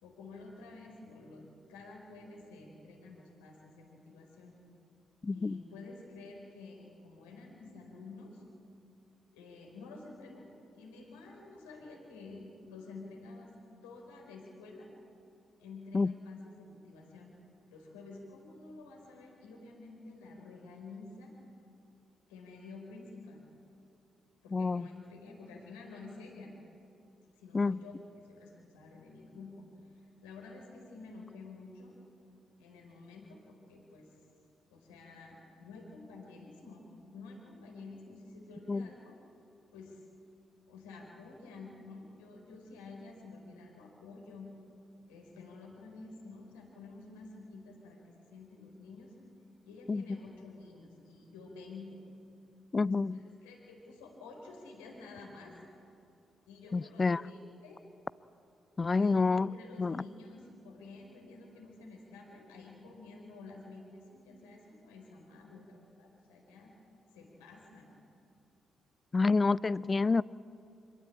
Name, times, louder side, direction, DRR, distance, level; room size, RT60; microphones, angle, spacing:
voice 1, 0.0-4.5 5.3-8.4 9.3-13.5 13.8-14.9 15.6-17.3 17.7-21.3 22.3-23.4 24.4-26.5 27.4-29.6 29.9-32.0 32.6-34.1 34.7-36.8 37.1-39.2 39.7-40.0 40.7-44.5 45.1-49.1 49.6-52.0 52.9-55.6 56.5-57.8 58.9-66.7 67.1-67.9, left 3 dB, 85° left, 4.7 m, -50 dB
voice 2, 5.2-5.6 15.9-16.1 24.5-24.9 27.5-27.8 38.7-38.9 49.9-50.0 52.7-53.2 56.7-57.2 58.8-60.0 69.1-70.2, left 4 dB, 35° left, 0.6 m, -28 dB
25.5 x 22.5 x 8.8 m
hypercardioid pair, 45°, 0 cm